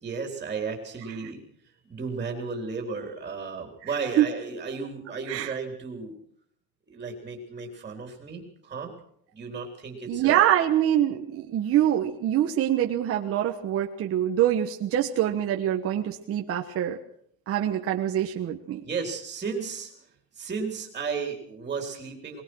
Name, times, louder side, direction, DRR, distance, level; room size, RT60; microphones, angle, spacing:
voice 1, 0.0-1.4 1.8-6.2 6.9-8.9 9.3-10.5 18.8-19.9 20.3-22.4, right 5 dB, 15° right, 3 dB, 3.7 m, -34 dB
voice 2, 10.1-17.0 17.5-18.8, right 11 dB, 30° right, 2 dB, 1.3 m, -24 dB
21.5 x 21.0 x 6.3 m, 0.65 s
cardioid pair, 170°, 44 cm